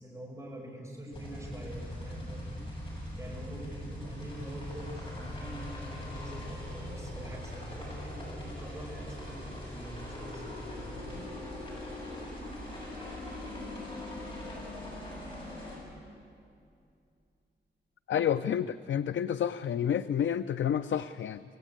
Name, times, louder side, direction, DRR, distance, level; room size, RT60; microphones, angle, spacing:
voice 1, 0.0-2.7 3.2-11.3, right 1 dB, 15° right, -4 dB, 5.6 m, -44 dB
sound 1, 1.1-15.8, left 1 dB, 30° left, 7.3 m, -41 dB
voice 2, 18.1-21.4, left 9 dB, 85° left, 12 dB, 0.5 m, -29 dB
26.5 x 16.5 x 8.7 m, 2.5 s
wide cardioid pair, 175°, 19 cm